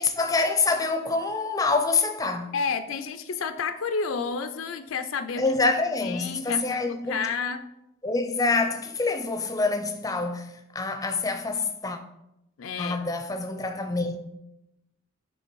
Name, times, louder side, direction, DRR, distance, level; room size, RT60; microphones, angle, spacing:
voice 1, 0.0-2.5 5.4-7.3 8.0-12.0 12.8-14.2, left 3 dB, 15° left, 0.5 m, -26 dB
voice 2, 2.5-5.5 6.0-7.6 12.6-13.0, left 5 dB, 80° left, 0.4 m, -30 dB
8.6 x 3.3 x 4.6 m
head